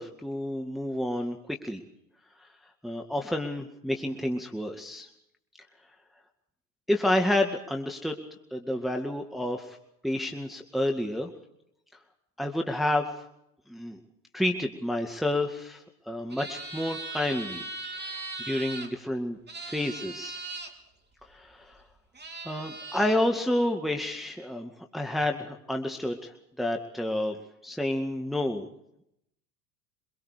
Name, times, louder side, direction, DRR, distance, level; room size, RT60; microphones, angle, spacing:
voice 1, 0.0-1.8 2.8-5.1 6.9-8.2 8.5-9.8 10.0-11.3 12.4-13.1 13.7-14.0 14.3-17.6 18.0-20.4 21.3-21.8 22.4-27.4 27.6-28.7, left 1 dB, ahead, 2 dB, 2.0 m, -30 dB
sound 1, 16.3-18.9 19.5-20.7 21.7-21.8 22.1-23.2, right 3 dB, 20° right, 3.9 m, -39 dB
24.5 x 23.0 x 5.1 m, 0.77 s
hypercardioid pair, 75°, 47 cm